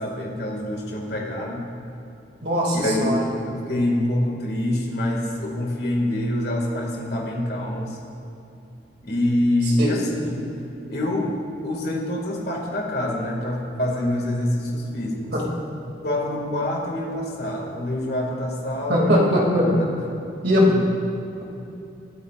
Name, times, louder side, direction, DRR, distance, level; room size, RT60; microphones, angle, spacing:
voice 1, 0.0-1.7 2.7-3.1 3.5-8.0 9.0-10.5 10.9-11.3 11.6-15.2 16.0-19.2 19.6-19.9 20.6-20.8, left 1 dB, 55° left, -1 dB, 2.2 m, -26 dB
voice 2, 2.4-3.2 9.6-9.9 15.3-15.4 18.9-19.6 20.4-20.6, equal, 60° right, -3 dB, 2.5 m, -20 dB
24.5 x 9.5 x 2.5 m, 2.8 s
head